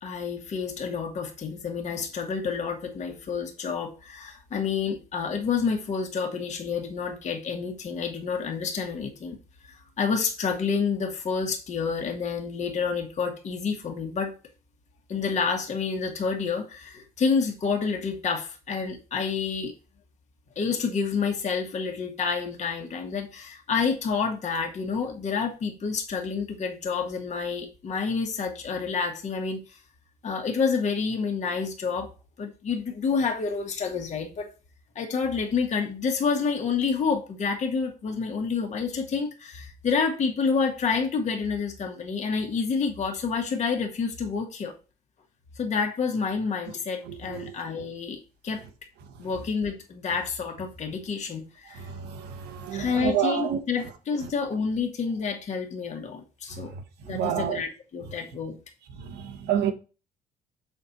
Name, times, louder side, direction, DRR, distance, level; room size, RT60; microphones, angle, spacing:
voice 1, 0.0-9.4 9.6-14.3 15.1-19.7 20.6-29.8 30.2-32.1 32.4-34.5 35.0-44.7 45.6-48.6 49.2-51.8 52.7-56.8 57.1-58.6, left 5 dB, 45° left, 1.8 m, -29 dB
voice 2, 47.1-47.5 51.7-53.6 56.5-56.6 57.1-57.6 59.0-59.7, right 9 dB, 85° right, 1.5 m, -29 dB
7.0 x 4.4 x 4.3 m
cardioid pair, 110°, 17 cm